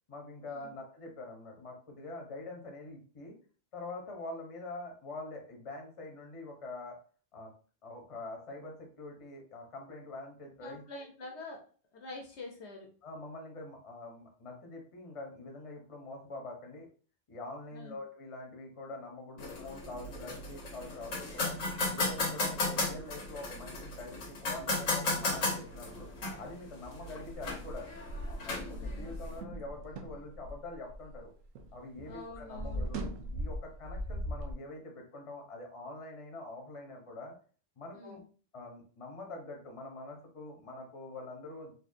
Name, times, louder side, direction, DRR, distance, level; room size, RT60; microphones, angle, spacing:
voice 1, 0.1-3.4 3.7-7.0 7.3-7.5 7.8-11.1 13.0-16.9 17.3-21.5 21.9-26.1 26.4-27.9 28.2-31.3 31.7-33.0 33.3-37.4 37.8-38.2 38.5-41.7, left 2 dB, 30° left, 1 dB, 0.8 m, -45 dB
voice 2, 10.6-11.6 11.9-12.9 17.7-18.0 22.4-22.6 28.5-29.1 32.0-32.9 37.9-38.2, left 3 dB, 65° left, 1 dB, 1.0 m, -46 dB
sound 1, 19.4-29.4, left 2 dB, 90° left, 1.4 m, -35 dB
sound 2, 27.3-31.7 32.0-34.5, equal, 90° right, 1.1 m, -39 dB
4.3 x 2.7 x 2.6 m, 0.40 s
omnidirectional pair, 1.3 m